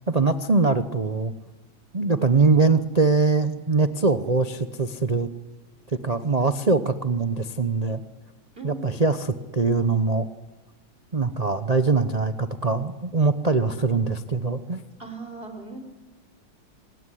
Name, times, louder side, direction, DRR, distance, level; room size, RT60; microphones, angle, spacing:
voice 1, 0.0-1.3 1.9-5.3 5.9-8.0 8.6-10.3 11.1-14.8, right 3 dB, 70° right, 9 dB, 0.3 m, -22 dB
voice 2, 8.5-9.0 15.0-15.8, right 3 dB, 25° right, 6 dB, 4.0 m, -38 dB
26.5 x 17.5 x 10.0 m, 1.2 s
omnidirectional pair, 2.3 m